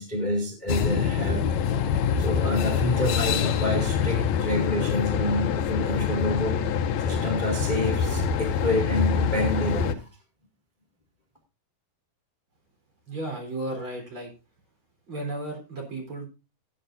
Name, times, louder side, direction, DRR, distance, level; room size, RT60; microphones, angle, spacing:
voice 1, 0.0-1.4 2.2-6.6 7.0-10.1, left 1 dB, 15° left, 2 dB, 1.5 m, -28 dB
sound 1, 0.7-9.9, left 7 dB, 85° left, 1.6 m, -25 dB
voice 2, 13.1-14.3 15.1-16.3, right 2 dB, 35° right, 1 dB, 4.6 m, -34 dB
19.0 x 9.1 x 2.7 m, 0.28 s
omnidirectional pair, 4.4 m